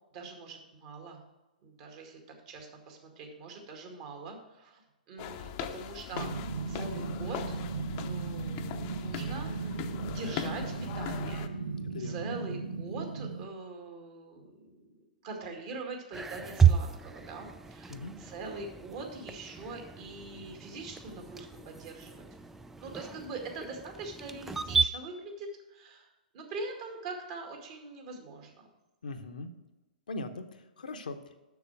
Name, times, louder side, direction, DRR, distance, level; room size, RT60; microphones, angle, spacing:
voice 1, 0.1-1.2 1.6-2.2 2.5-4.8 5.1-6.3 6.7-7.6 7.9-11.6 12.0-22.2 22.8-26.1 26.3-28.7, right 3 dB, 40° right, 2 dB, 1.9 m, -43 dB
sound 1, 5.2-11.5, left 9 dB, 35° left, 0.7 m, -40 dB
sound 2, 6.1-13.4, right 4 dB, 90° right, 1.0 m, -36 dB
voice 2, 11.8-12.3 17.9-18.2 29.0-29.5 30.1-31.4, left 2 dB, 70° left, 7 dB, 0.8 m, -40 dB
sound 3, 16.1-24.9, right 7 dB, 5° right, 0.3 m, -32 dB
7.0 x 6.4 x 6.0 m, 1.1 s
figure-of-eight pair, 115°, 5 cm